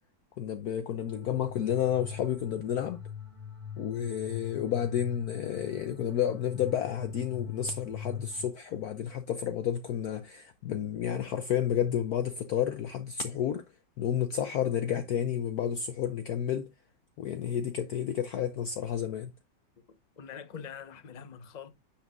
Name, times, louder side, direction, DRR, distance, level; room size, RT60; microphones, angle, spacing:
voice 1, 0.4-3.0 3.8-13.6 14.0-16.7 17.2-19.3, left 9 dB, 70° left, 1.0 m, -31 dB
sound 1, 1.1-8.5, left 8 dB, 25° right, 2.8 m, -43 dB
voice 2, 19.9-21.7, left 7 dB, 30° left, 0.8 m, -44 dB
9.4 x 7.3 x 2.4 m
omnidirectional pair, 2.1 m